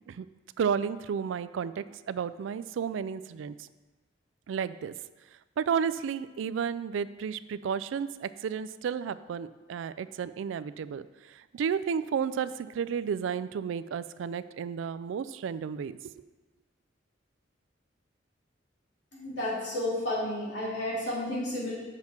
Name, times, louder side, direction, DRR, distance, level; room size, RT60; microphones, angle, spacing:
voice 1, 0.6-3.6 4.5-4.9 5.6-11.0 11.3-16.1, right 7 dB, 85° right, 15 dB, 0.3 m, -32 dB
voice 2, 19.1-21.8, left 1 dB, 70° left, -6 dB, 2.8 m, -32 dB
7.8 x 5.9 x 4.3 m, 1.2 s
head